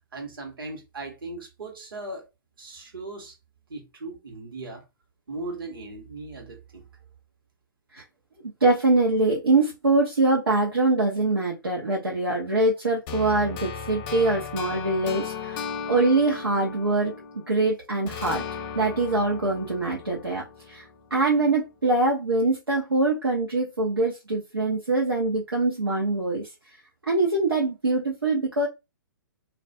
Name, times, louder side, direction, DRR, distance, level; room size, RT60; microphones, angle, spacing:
voice 1, 0.1-2.3 2.6-3.4 3.7-4.8 5.3-6.9, right 2 dB, 70° right, 1.0 m, -38 dB
voice 2, 8.4-17.1 17.5-18.5 18.7-20.8 21.1-26.5 27.0-28.7, right 2 dB, 90° right, 0.7 m, -23 dB
sound 1, 13.1-17.6 18.1-21.1, left 6 dB, 30° left, 0.4 m, -36 dB
2.4 x 2.2 x 2.5 m
figure-of-eight pair, 125°, 12 cm